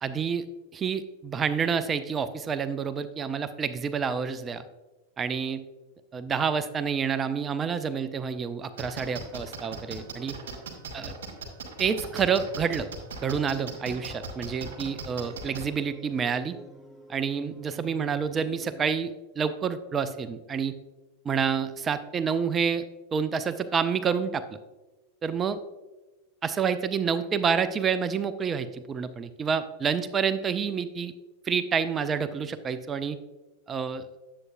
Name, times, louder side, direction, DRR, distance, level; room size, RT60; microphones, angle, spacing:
voice 1, 0.0-0.4 0.7-4.6 5.2-5.6 6.1-10.4 10.9-11.1 11.8-12.9 13.2-16.6 17.1-20.7 21.3-22.8 23.1-24.4 25.2-25.6 26.4-31.1 31.5-33.2 33.7-34.0, right 6 dB, 20° right, 12 dB, 0.4 m, -28 dB
sound 1, 8.8-15.6, right 4 dB, 60° right, 1.7 m, -38 dB
sound 2, 13.2-18.8, right 1 dB, ahead, 0.8 m, -49 dB
9.6 x 7.6 x 2.5 m, 1.1 s
figure-of-eight pair, 90°, 0 cm